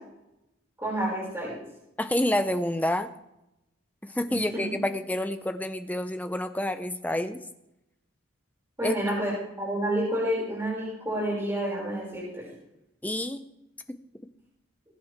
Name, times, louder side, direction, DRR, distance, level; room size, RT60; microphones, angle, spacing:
voice 1, 0.8-1.6 4.3-4.6 8.8-9.3 9.6-12.4, right 1 dB, 15° right, -7 dB, 6.2 m, -29 dB
voice 2, 2.0-3.1 4.0-7.4 8.8-9.0 13.0-13.4, left 1 dB, 10° left, 8 dB, 0.6 m, -28 dB
20.5 x 9.4 x 3.6 m, 0.88 s
head